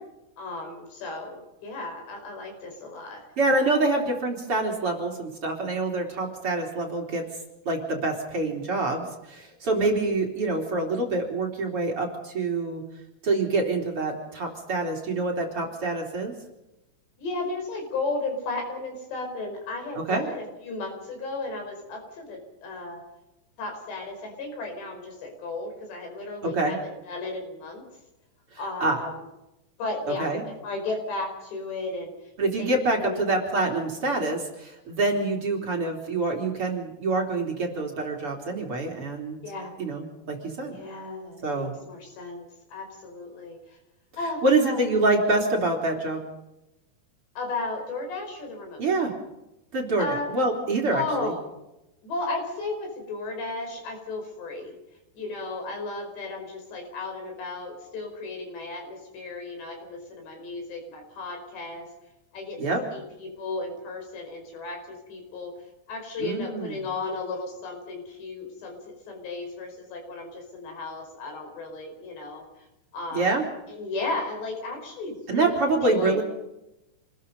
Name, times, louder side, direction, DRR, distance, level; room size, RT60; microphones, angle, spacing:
voice 1, 0.4-3.2 17.2-23.0 23.6-27.8 28.6-29.1 29.8-32.3 32.6-32.7 33.0-33.2 39.4-39.8 40.7-43.8 44.2-44.8 47.4-49.1 50.0-50.3 50.9-51.4 52.0-54.8 55.1-61.9 62.3-62.6 62.9-65.6 65.9-68.8 69.1-72.7 72.9-73.4 73.7-76.2, left 3 dB, 85° left, 3 dB, 7.4 m, -34 dB
voice 2, 3.4-7.2 7.7-12.8 13.2-16.3 20.1-20.3 26.4-26.8 28.8-29.0 30.2-30.4 32.4-39.4 39.8-40.8 41.4-41.8 44.4-46.2 48.8-49.1 49.7-51.3 62.6-62.8 66.2-66.8 73.1-73.5 75.3-76.2, right 2 dB, 35° right, 0 dB, 3.8 m, -26 dB
27.5 x 20.5 x 5.5 m, 0.93 s
omnidirectional pair, 4.8 m